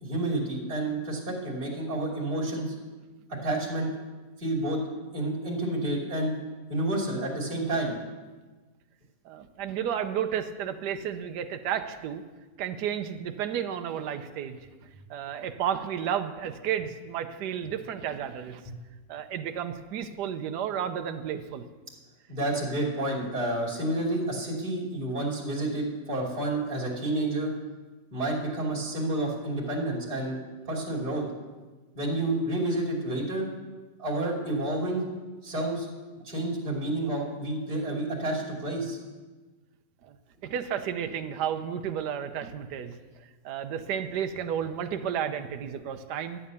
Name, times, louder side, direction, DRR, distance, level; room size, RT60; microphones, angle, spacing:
voice 1, 0.0-2.7 3.3-3.9 4.4-4.8 5.1-6.3 6.7-7.9 18.7-18.8 22.3-27.5 28.1-31.2 31.9-33.5 34.0-35.0 35.4-35.9 36.2-39.0, right 1 dB, 30° right, -4 dB, 3.0 m, -29 dB
voice 2, 9.2-12.2 12.6-14.6 15.1-18.6 19.1-21.6 40.0-40.2 40.4-43.0 43.4-46.4, right 9 dB, 75° right, 7 dB, 1.3 m, -32 dB
12.5 x 8.6 x 6.9 m, 1.3 s
omnidirectional pair, 1.9 m